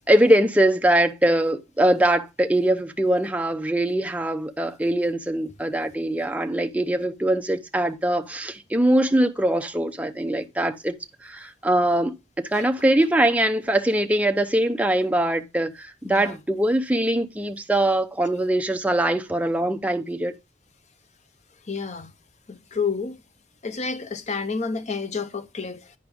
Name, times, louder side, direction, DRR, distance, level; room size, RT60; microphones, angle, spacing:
voice 1, 0.1-10.9 11.2-20.4, right 1 dB, 10° right, 0.7 m, -22 dB
voice 2, 16.0-16.4 21.6-22.1 22.5-23.2 23.6-25.9, left 5 dB, 40° left, 0.7 m, -30 dB
10.5 x 4.9 x 3.5 m
head